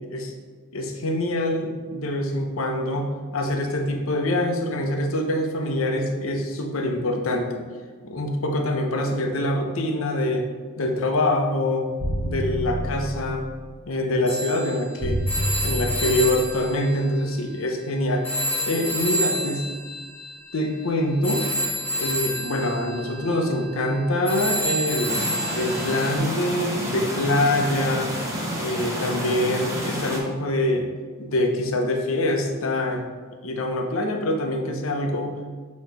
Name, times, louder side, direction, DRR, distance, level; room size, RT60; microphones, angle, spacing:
voice 1, 0.7-7.6 8.0-10.5 10.8-11.9 12.2-13.5 13.9-15.2 15.6-18.3 18.6-19.7 20.5-21.5 21.9-25.2 25.5-28.2 28.6-30.9 31.2-33.0 33.4-35.4, left 1 dB, 70° left, 4 dB, 0.8 m, -25 dB
sound 1, 12.0-13.4 15.0-16.4, equal, 60° right, 1.0 m, -28 dB
Telephone, 14.3-17.9 18.2-26.2, right 1 dB, 10° left, 1.7 m, -30 dB
sound 2, 25.1-30.2, equal, 15° right, 1.1 m, -29 dB
6.9 x 3.1 x 4.5 m, 1.5 s
head